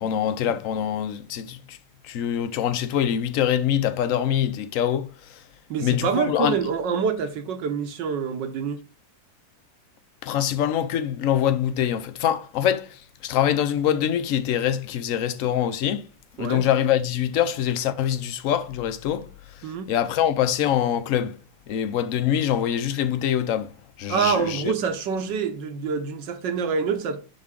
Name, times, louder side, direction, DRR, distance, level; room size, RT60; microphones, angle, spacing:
voice 1, 0.0-1.8 2.0-5.4 5.8-6.6 10.2-16.0 16.4-19.3 19.9-21.4 21.7-23.7 24.0-24.7, left 10 dB, 65° left, 0.8 m, -24 dB
voice 2, 5.7-8.8 16.4-16.7 19.6-19.9 24.1-27.2, right 6 dB, 70° right, 1.6 m, -26 dB
10.5 x 3.6 x 3.7 m
omnidirectional pair, 2.0 m